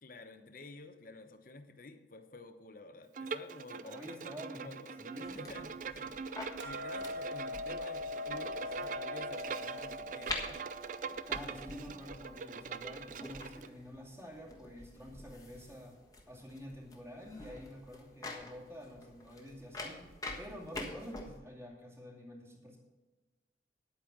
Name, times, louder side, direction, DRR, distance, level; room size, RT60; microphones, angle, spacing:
voice 1, 0.0-4.3 4.6-6.3 6.6-10.6, left 3 dB, 50° left, 8 dB, 0.9 m, -51 dB
Bowed string instrument, 3.1-13.7, right 5 dB, 45° right, 0.4 m, -43 dB
voice 2, 3.8-5.3 5.6-5.7 6.0-6.2 11.1-16.0 16.3-20.1 20.4-22.8, equal, 15° right, -1 dB, 2.4 m, -48 dB
sound 1, 5.2-21.4, left 2 dB, 20° left, 1.4 m, -48 dB
Hammer, 6.6-12.8, left 2 dB, 80° right, 1.1 m, -42 dB
9.9 x 8.6 x 6.0 m, 1.2 s
head